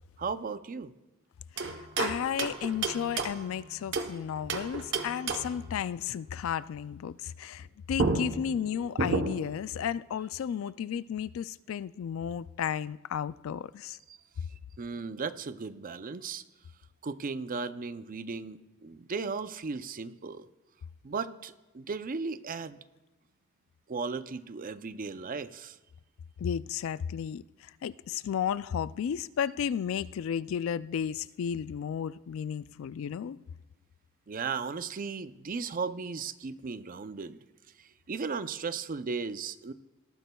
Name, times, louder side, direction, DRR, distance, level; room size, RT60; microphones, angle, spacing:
voice 1, 0.2-0.9 14.1-14.2 14.8-16.4 17.0-20.5 21.0-22.8 23.9-25.8 34.3-37.4 37.8-39.7, right 4 dB, 40° right, 0.5 m, -36 dB
voice 2, 1.6-14.0 26.4-33.4, left 8 dB, 70° left, 0.3 m, -33 dB
sound 1, 1.6-4.2 4.5-5.7 7.6-7.7 8.0-9.6, right 3 dB, 60° right, 1.0 m, -32 dB
18.5 x 13.5 x 2.3 m
head